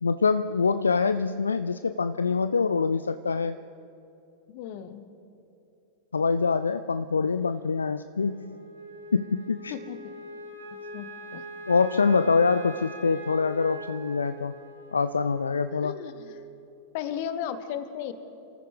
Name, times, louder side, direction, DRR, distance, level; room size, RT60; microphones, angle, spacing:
voice 1, 0.0-3.6 6.1-8.6 9.1-9.7 11.7-14.5 14.9-16.0, left 5 dB, 75° left, 12 dB, 0.3 m, -25 dB
voice 2, 4.5-5.1 9.7-10.0 10.9-11.4 15.8-16.4 16.9-18.1, left 9 dB, 50° left, 12 dB, 1.1 m, -35 dB
Wind instrument woodwind instrument, 8.1-16.6, right 1 dB, 80° right, 3.4 m, -43 dB
28.0 x 14.5 x 3.6 m, 2.9 s
figure-of-eight pair, 90°, 0 cm